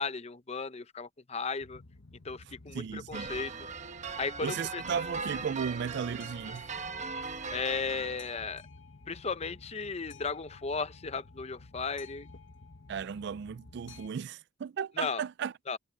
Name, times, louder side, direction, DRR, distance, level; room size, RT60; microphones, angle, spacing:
voice 1, 0.0-1.8 2.2-3.5 4.2-4.8 7.5-8.6 9.1-12.3 15.0-15.2 15.7-15.8, left 4 dB, 35° left, 0.7 m, -35 dB
Boat Water vehicle, 1.6-14.1, left 3 dB, 65° left, 1.1 m, -52 dB
voice 2, 2.7-3.3 4.4-6.6 12.9-15.5, right 7 dB, 60° right, 0.3 m, -35 dB
sound 1, 3.1-8.5, right 4 dB, 35° right, 1.3 m, -39 dB
head